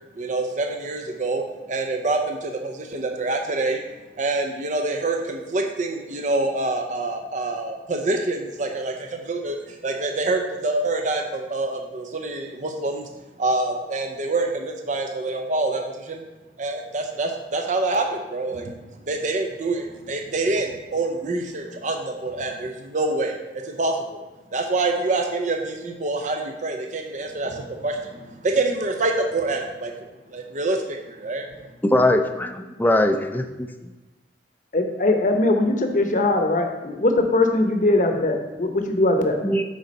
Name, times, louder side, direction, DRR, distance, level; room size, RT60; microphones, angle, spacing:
voice 1, 0.2-1.4 1.7-3.8 4.2-13.1 13.4-16.2 16.6-18.7 19.1-23.4 23.6-24.2 24.5-29.9 30.3-31.5, right 2 dB, 45° right, 3 dB, 0.6 m, -26 dB
voice 2, 31.8-33.7 39.4-39.6, left 1 dB, 10° left, 6 dB, 0.5 m, -21 dB
voice 3, 34.7-39.4, left 2 dB, 45° left, 5 dB, 0.9 m, -21 dB
8.4 x 4.0 x 5.3 m, 1.1 s
head